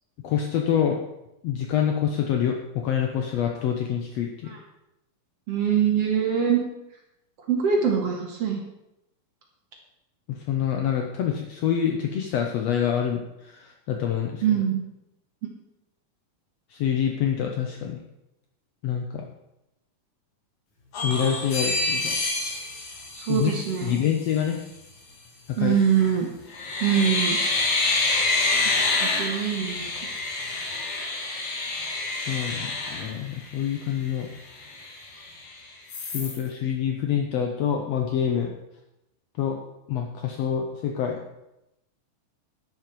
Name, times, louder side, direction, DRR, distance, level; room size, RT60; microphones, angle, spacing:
voice 1, 0.2-1.0 1.4-4.5 10.3-14.6 16.7-18.0 18.8-19.3 21.0-22.2 23.3-23.5 23.8-24.6 25.6-25.8 32.1-34.3 36.0-38.5 39.4-39.6 39.9-41.3, left 8 dB, 75° left, 3 dB, 1.5 m, -26 dB
voice 2, 5.5-6.6 7.5-8.6 14.4-14.8 23.1-24.0 25.6-26.3 26.8-27.4 28.2-28.3 29.0-29.9, right 8 dB, 55° right, 0 dB, 2.2 m, -23 dB
sound 1, 20.9-24.0 25.8-26.1 26.5-33.8 34.2-34.3 34.6-35.5 35.9-36.4, left 3 dB, 60° left, 3.4 m, -27 dB
11.0 x 11.0 x 4.6 m, 0.88 s
omnidirectional pair, 4.1 m